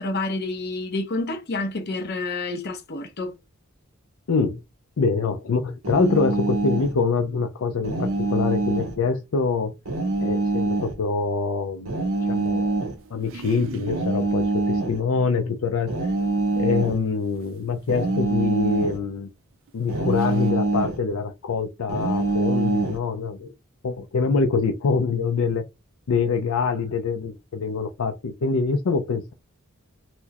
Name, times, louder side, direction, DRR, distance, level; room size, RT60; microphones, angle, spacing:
voice 1, 0.0-3.3, left 2 dB, 50° left, 0.7 m, -29 dB
voice 2, 4.3-4.6 5.0-9.7 10.2-11.9 12.3-12.8 13.1-16.0 16.6-19.3 19.7-23.5 23.8-25.6 26.1-29.3, left 4 dB, 80° left, 0.5 m, -25 dB
sound 1, 5.8-7.0 7.8-9.0 9.9-11.0 11.9-13.0 13.9-15.0 15.9-17.0 17.9-19.0 19.9-21.0 21.9-23.0, right 2 dB, 85° right, 1.0 m, -24 dB
sound 2, 12.9-14.1 16.1-16.2 17.4-17.5 18.9-19.0 19.7-19.8 20.0-20.5, right 6 dB, 65° right, 0.4 m, -38 dB
4.2 x 2.1 x 2.8 m
head